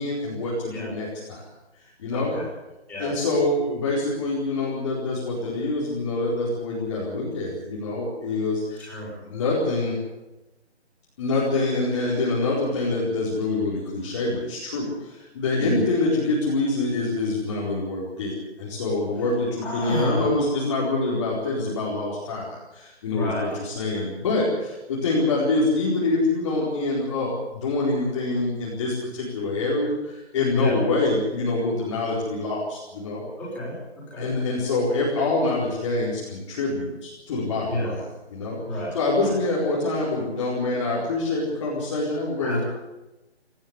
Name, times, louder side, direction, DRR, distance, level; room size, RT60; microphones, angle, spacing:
voice 1, 0.0-1.5 2.0-2.4 3.0-8.9 9.2-10.0 11.2-33.2 34.2-38.0 38.3-38.6 38.9-42.6, left 2 dB, 25° left, -5 dB, 4.5 m, -25 dB
voice 2, 2.1-2.5 2.9-3.1 8.8-9.1 15.5-15.8 19.6-20.6 23.1-23.6 30.5-30.8 33.4-34.3 37.7-37.9 38.6-39.0 39.2-39.3 42.4-42.6, equal, 5° left, -7 dB, 6.5 m, -30 dB
18.5 x 16.0 x 9.9 m, 1.0 s
figure-of-eight pair, 165°, 34 cm